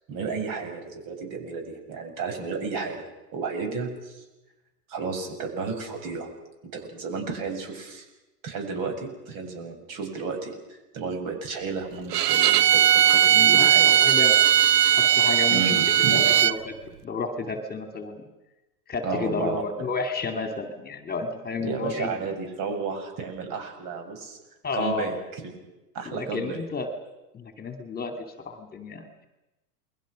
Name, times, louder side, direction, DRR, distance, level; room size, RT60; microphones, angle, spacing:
voice 1, 0.1-4.2 4.9-6.3 6.7-8.0 8.4-14.0 15.5-16.2 19.0-19.6 21.6-24.4 24.7-25.5 25.9-26.6, right 4 dB, 45° right, 4 dB, 8.0 m, -32 dB
Bowed string instrument, 12.1-16.6, right 10 dB, 75° right, 0.9 m, -18 dB
voice 2, 13.2-13.7 14.0-14.3 15.2-15.8 16.1-16.7 17.0-18.2 18.9-22.1 24.6-25.1 26.1-26.9 27.3-29.3, left 4 dB, 20° left, 6 dB, 2.5 m, -31 dB
29.0 x 22.0 x 6.4 m, 1.0 s
hypercardioid pair, 110°, 48 cm